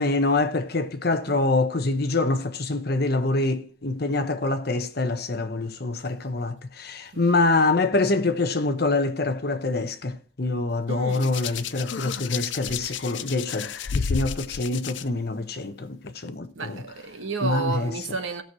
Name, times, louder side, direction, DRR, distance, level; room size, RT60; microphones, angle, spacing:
voice 1, 0.0-16.8 17.4-17.9, left 2 dB, 55° left, 1.0 m, -25 dB
voice 2, 7.1-7.5 10.9-11.4 12.7-12.8 16.5-18.4, right 4 dB, 85° right, 1.3 m, -32 dB
Hands, 11.1-15.0 16.1-16.3, left 6 dB, 70° left, 0.5 m, -31 dB
16.5 x 6.3 x 4.3 m
head